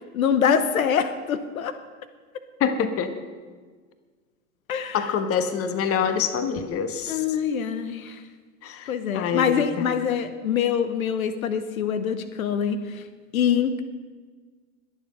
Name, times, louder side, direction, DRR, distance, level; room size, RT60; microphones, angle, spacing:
voice 1, 0.1-1.7 4.7-5.0 7.1-8.2 8.9-13.0 13.3-13.8, left 7 dB, 85° left, 10 dB, 1.0 m, -24 dB
voice 2, 2.6-3.1 4.9-7.2 8.6-9.9, left 7 dB, 35° left, 9 dB, 1.4 m, -26 dB
21.5 x 7.2 x 5.3 m, 1.5 s
hypercardioid pair, 105°, 40 cm